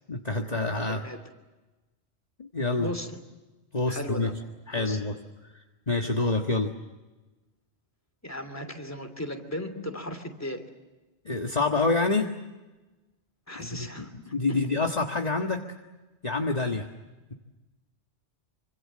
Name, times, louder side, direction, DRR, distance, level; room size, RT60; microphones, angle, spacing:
voice 1, 0.1-1.0 2.4-2.9 3.7-4.3 4.7-5.1 5.5-6.7 11.2-12.3 13.6-13.9 14.3-15.6 16.2-16.9, left 3 dB, 35° left, 2 dB, 1.7 m, -27 dB
voice 2, 0.8-1.2 2.8-3.2 3.9-4.3 4.7-5.0 8.2-10.7 13.5-14.7, left 1 dB, 15° left, 7 dB, 2.9 m, -36 dB
27.5 x 25.5 x 7.6 m, 1.1 s
omnidirectional pair, 1.1 m